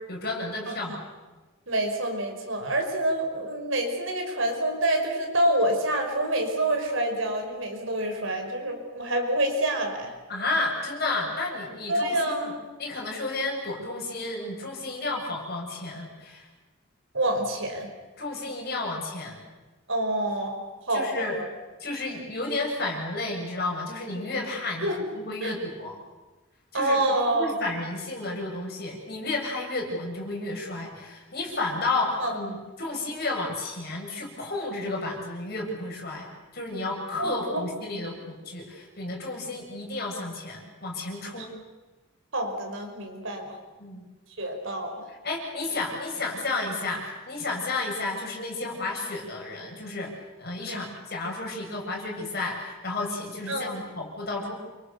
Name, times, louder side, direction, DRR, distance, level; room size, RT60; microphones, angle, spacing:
voice 1, 0.1-0.9 10.3-12.3 12.8-16.5 18.2-19.4 20.9-21.4 21.8-24.9 25.2-25.9 26.7-27.0 27.4-36.3 36.5-41.5 43.8-44.0 45.2-50.1 50.4-54.6, left 2 dB, 45° left, -1 dB, 7.4 m, -32 dB
voice 2, 0.7-1.0 1.7-10.1 11.9-12.6 17.1-17.9 19.9-21.5 24.8-25.1 25.4-25.5 26.7-27.7 32.2-32.4 37.2-37.7 41.4-41.5 42.3-43.6 44.4-45.1 50.7-50.8 53.5-53.8, right 1 dB, 65° right, 3 dB, 5.5 m, -27 dB
29.0 x 25.5 x 6.9 m, 1.2 s
head